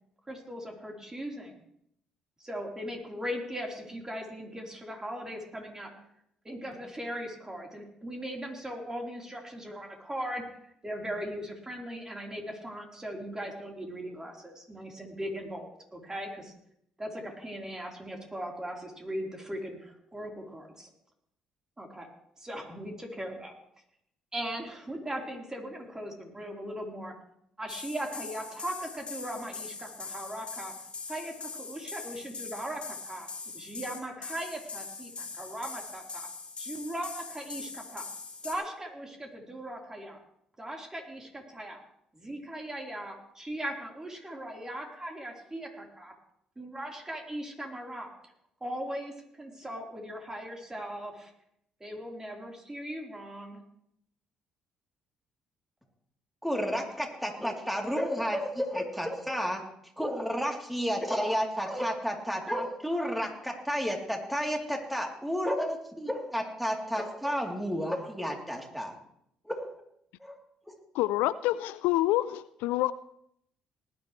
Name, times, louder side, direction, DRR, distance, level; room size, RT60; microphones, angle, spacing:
voice 1, 0.3-1.6 2.4-5.9 6.4-10.4 10.8-16.5 17.0-20.9 21.8-22.1 22.4-23.5 24.3-27.1 27.6-30.7 31.1-33.3 33.5-36.3 36.6-38.1 38.4-40.2 40.6-41.8 42.1-46.1 46.6-48.1 48.6-51.3 51.8-53.6, equal, 20° right, 0 dB, 4.0 m, -39 dB
sound 1, 27.7-38.6, left 4 dB, 35° left, 3.3 m, -42 dB
voice 2, 56.4-59.6 60.0-68.9 69.5-69.7 70.2-70.4 70.7-70.8, equal, ahead, 1 dB, 3.2 m, -31 dB
voice 3, 70.9-72.9, left 16 dB, 75° left, 17 dB, 0.4 m, -27 dB
19.5 x 11.0 x 3.2 m, 0.72 s
hypercardioid pair, 50°, 3 cm